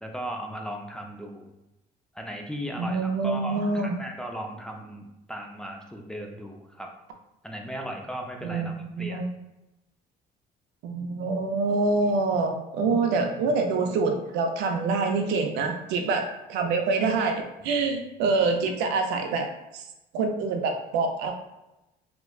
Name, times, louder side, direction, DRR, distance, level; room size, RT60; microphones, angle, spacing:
voice 1, 0.0-1.5 2.1-6.9 7.4-9.2, equal, 5° left, 2 dB, 0.4 m, -37 dB
voice 2, 2.8-4.0 8.4-9.3 10.8-19.8 20.1-21.3, right 3 dB, 90° right, 4 dB, 0.5 m, -26 dB
4.3 x 2.2 x 2.3 m, 0.95 s
cardioid pair, 110°, 17 cm